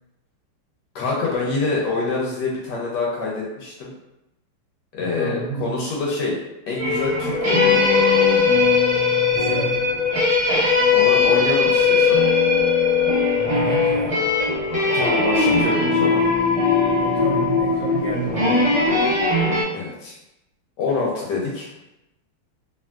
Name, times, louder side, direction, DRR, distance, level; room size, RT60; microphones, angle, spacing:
voice 1, 0.9-3.9 4.9-6.4 6.7-7.8 10.9-12.2 14.9-16.2 19.7-20.2 20.8-21.7, left 3 dB, 75° left, -3 dB, 1.0 m, -26 dB
voice 2, 5.0-5.8 9.3-9.8 11.3-11.4 13.3-14.2 17.0-18.7, right 4 dB, 55° right, -12 dB, 0.5 m, -30 dB
sound 1, 6.8-19.6, left 4 dB, 25° right, 1.2 m, -19 dB
3.3 x 2.4 x 2.3 m, 0.93 s
omnidirectional pair, 2.3 m